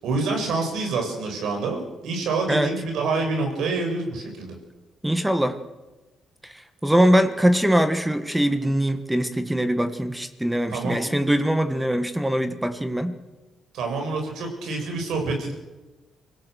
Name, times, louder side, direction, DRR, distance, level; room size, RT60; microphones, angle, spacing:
voice 1, 0.0-4.5 10.7-11.0 13.7-15.5, right 3 dB, 80° right, 3 dB, 6.7 m, -27 dB
voice 2, 5.0-5.6 6.4-6.5 6.8-13.2, equal, 5° right, 9 dB, 1.7 m, -22 dB
25.5 x 17.0 x 6.5 m, 1.1 s
cardioid pair, 90°, 0 cm